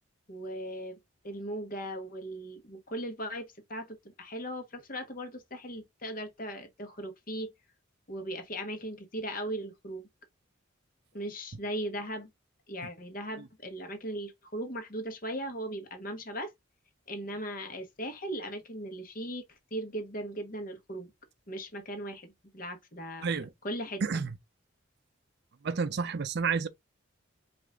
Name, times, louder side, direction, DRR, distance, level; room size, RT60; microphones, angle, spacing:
voice 1, 0.3-1.0 1.2-7.5 8.1-10.1 11.1-12.3 12.7-16.5 17.1-19.4 19.7-21.1 21.5-23.3 23.6-24.2, right 1 dB, 45° left, 1.1 m, -38 dB
voice 2, 24.0-24.3 25.6-26.7, right 5 dB, 55° right, 0.5 m, -30 dB
4.9 x 2.6 x 3.3 m
head